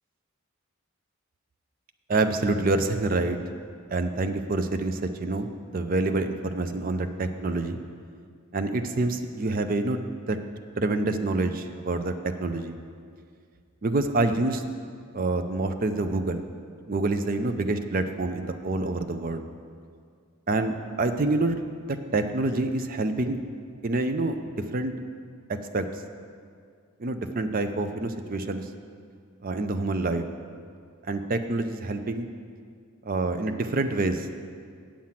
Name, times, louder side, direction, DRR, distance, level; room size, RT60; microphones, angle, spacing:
voice 1, 2.1-3.4 3.9-7.8 8.5-10.0 10.3-10.4 10.8-12.8 13.8-14.6 15.1-16.4 16.9-19.4 20.5-21.6 21.9-23.4 23.8-24.4 24.7-24.9 25.5-25.9 27.0-28.7 29.4-30.2 31.0-32.3 33.0-34.3, right 2 dB, 40° right, 8 dB, 0.5 m, -27 dB
8.6 x 7.3 x 5.8 m, 2.2 s
head